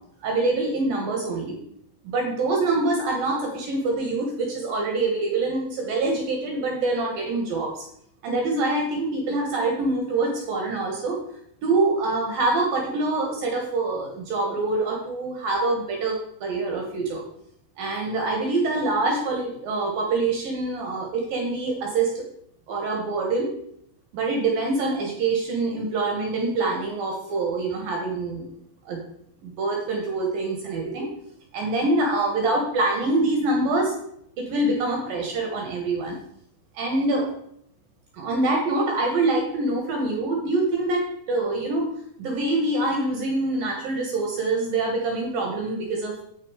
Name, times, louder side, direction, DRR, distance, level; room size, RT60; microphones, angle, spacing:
voice 1, 0.2-1.6 2.0-7.9 8.2-11.2 11.6-17.2 17.8-22.2 22.7-23.5 24.1-28.4 28.9-29.0 29.4-31.1 31.5-33.9 34.4-36.2 36.7-37.3 38.1-41.9 42.2-46.2, right 2 dB, 70° right, 1 dB, 2.3 m, -25 dB
8.8 x 6.7 x 4.8 m, 0.71 s
omnidirectional pair, 5.6 m